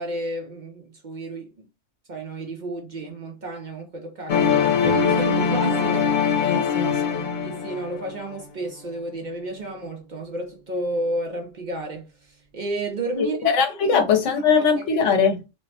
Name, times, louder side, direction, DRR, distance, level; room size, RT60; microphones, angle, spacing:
voice 1, 0.0-1.7 2.1-6.7 7.4-13.5 13.8-14.1 14.8-15.0, right 1 dB, 55° right, 0.5 m, -32 dB
sound 1, 4.3-8.2, left 7 dB, 55° left, 0.5 m, -22 dB
Guitar, 4.8-10.8, right 4 dB, 30° right, 0.8 m, -36 dB
voice 2, 6.4-7.3 13.4-15.4, left 6 dB, 75° left, 1.1 m, -21 dB
3.1 x 2.1 x 2.7 m
omnidirectional pair, 1.3 m